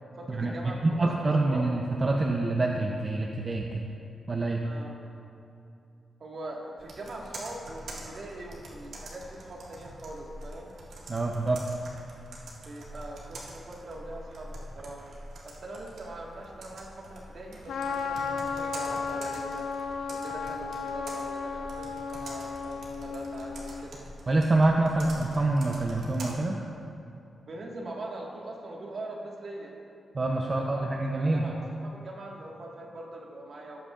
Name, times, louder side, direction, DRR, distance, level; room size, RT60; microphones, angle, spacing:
voice 1, 0.1-1.6 4.6-4.9 6.2-10.7 12.6-15.1 15.4-19.7 20.1-24.0 24.9-25.0 27.5-29.7 30.4-33.8, right 2 dB, 50° right, -2 dB, 1.7 m, -42 dB
voice 2, 0.8-3.8 4.3-4.6 11.1-11.6 24.3-26.6 30.1-31.5, right 2 dB, 30° right, 0 dB, 0.6 m, -26 dB
Computer keyboard, 6.8-26.3, right 1 dB, 75° right, 1.8 m, -45 dB
Trumpet, 17.7-23.9, left 5 dB, 90° left, 0.5 m, -34 dB
18.0 x 8.3 x 2.5 m, 2.7 s
wide cardioid pair, 120°, 0 cm